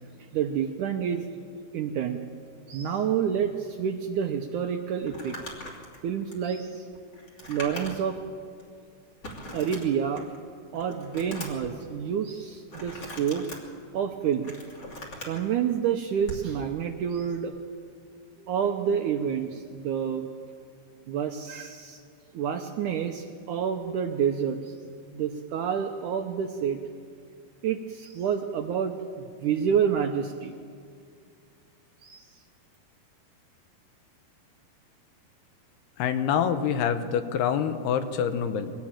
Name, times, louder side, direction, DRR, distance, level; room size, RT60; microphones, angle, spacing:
voice 1, 0.3-1.3 1.7-2.2 2.7-5.4 6.0-6.9 7.5-8.2 9.5-10.3 10.7-13.5 13.9-14.5 15.2-17.5 18.4-20.3 21.1-22.0 22.3-26.8 27.6-30.5 32.0-32.3, right 8 dB, 75° right, 5 dB, 1.9 m, -28 dB
Crumpling crinkling, 5.0-8.2 8.6-8.7 9.2-10.4 10.7-11.7 12.7-13.6 14.2-15.4 16.2-16.5, equal, 30° left, 3.2 m, -41 dB
voice 2, 36.0-38.7, left 8 dB, 85° left, 9 dB, 3.1 m, -26 dB
23.5 x 17.5 x 8.9 m, 2.2 s
omnidirectional pair, 4.5 m